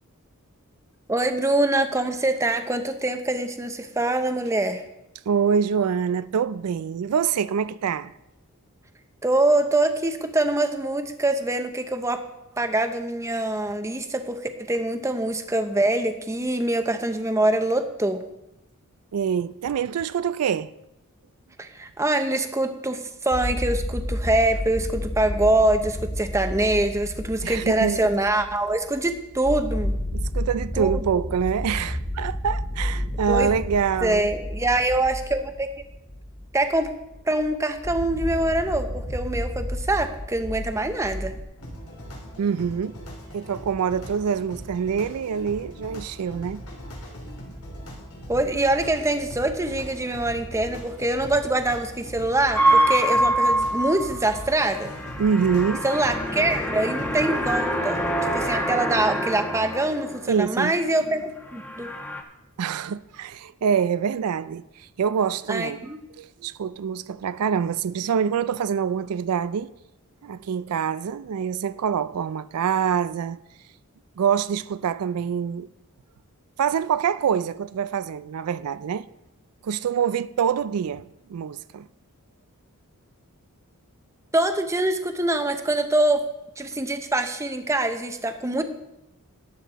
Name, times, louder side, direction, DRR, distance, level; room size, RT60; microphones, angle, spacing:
voice 1, 1.1-4.8 9.2-12.2 12.6-14.4 14.7-18.3 21.6-29.9 30.8-31.3 33.3-33.5 34.0-35.7 36.5-36.9 37.3-41.4 48.3-54.9 55.8-61.9 65.5-66.0 84.3-86.2 86.6-88.6, right 2 dB, 15° right, 0.7 m, -24 dB
voice 2, 5.3-8.1 19.1-20.7 27.4-28.1 30.1-34.3 42.4-43.0 43.3-46.6 55.2-55.8 60.3-60.7 62.6-69.7 70.2-73.4 74.2-75.7 76.6-79.1 79.6-81.9, right 7 dB, 85° right, 0.4 m, -25 dB
sound 1, 23.3-41.4, left 1 dB, 45° left, 2.5 m, -31 dB
sound 2, 41.6-58.6, equal, 85° left, 3.3 m, -40 dB
sound 3, 52.5-60.4 60.7-61.2 61.5-62.2, right 1 dB, 10° left, 1.1 m, -25 dB
12.5 x 9.4 x 4.1 m
head